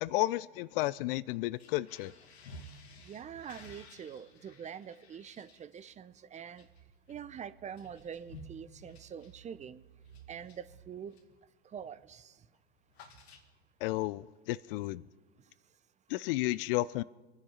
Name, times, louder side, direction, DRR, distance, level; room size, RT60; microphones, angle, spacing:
voice 1, 0.0-2.1 13.8-15.0 16.1-17.0, left 18 dB, 60° left, 0.5 m, -32 dB
sound 1, 1.5-11.4 11.7-12.0 12.3-13.9, equal, 80° left, 1.9 m, -55 dB
voice 2, 3.0-6.7 7.1-9.8 10.3-11.2 11.6-12.4, right 8 dB, 20° right, 0.5 m, -45 dB
24.5 x 9.9 x 5.6 m
hypercardioid pair, 95°, 31 cm